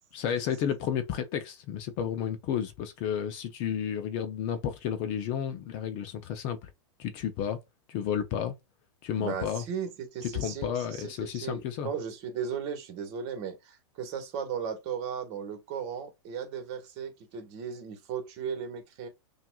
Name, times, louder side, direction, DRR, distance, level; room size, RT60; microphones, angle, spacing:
voice 1, 0.1-6.7 7.0-7.6 7.9-8.5 9.0-9.6 10.3-11.9, left 8 dB, 35° left, 0.6 m, -32 dB
voice 2, 9.1-19.1, right 7 dB, 40° right, 1.4 m, -36 dB
5.8 x 2.5 x 2.3 m
supercardioid pair, 150°, 16 cm